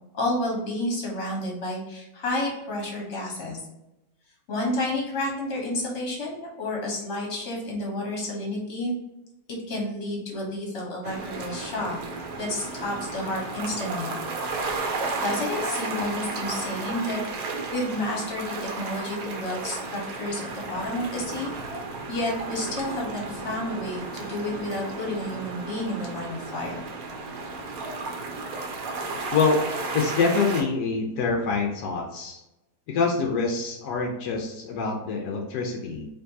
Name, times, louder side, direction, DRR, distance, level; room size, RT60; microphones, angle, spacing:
voice 1, 0.1-3.6 4.5-8.9 9.5-12.0 12.4-14.1 15.2-20.4 20.7-21.5 22.1-26.8, left 1 dB, 45° left, -2 dB, 1.5 m, -30 dB
sound 1, 11.0-30.6, right 3 dB, 65° right, 1.1 m, -33 dB
voice 2, 29.3-29.6 29.9-32.4 32.9-36.1, left 4 dB, 80° left, 1 dB, 1.3 m, -25 dB
4.5 x 3.1 x 2.7 m, 0.94 s
omnidirectional pair, 1.8 m